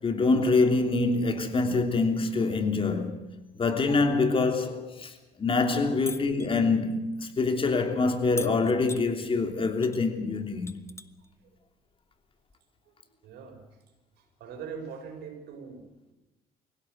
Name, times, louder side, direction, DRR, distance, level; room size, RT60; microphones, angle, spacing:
voice 1, 0.0-10.7, left 3 dB, 30° left, 3.1 m, -25 dB
sound 1, 6.1-6.5 8.4-9.1 9.8-10.0 10.4-11.3 12.5-12.6, left 3 dB, 15° left, 1.2 m, -39 dB
voice 2, 13.2-13.6 14.2-16.1, right 6 dB, 80° right, 5.8 m, -42 dB
24.0 x 16.5 x 8.0 m
cardioid pair, 110°, 17 cm